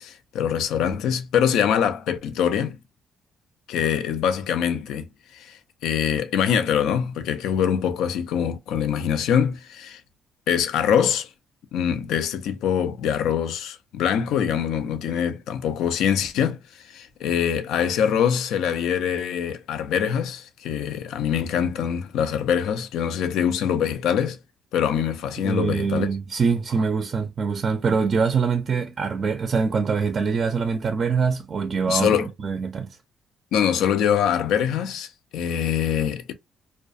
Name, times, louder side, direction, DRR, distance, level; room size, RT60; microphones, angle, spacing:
voice 1, 0.0-2.8 3.7-5.0 5.3-5.6 5.8-10.0 10.5-11.3 11.7-16.6 16.9-24.4 24.7-26.1 31.9-32.3 33.5-36.3, left 8 dB, 85° left, 0.4 m, -24 dB
voice 2, 25.4-33.0, right 5 dB, 45° right, 0.4 m, -24 dB
2.3 x 2.1 x 2.5 m
cardioid pair, 90°, 0 cm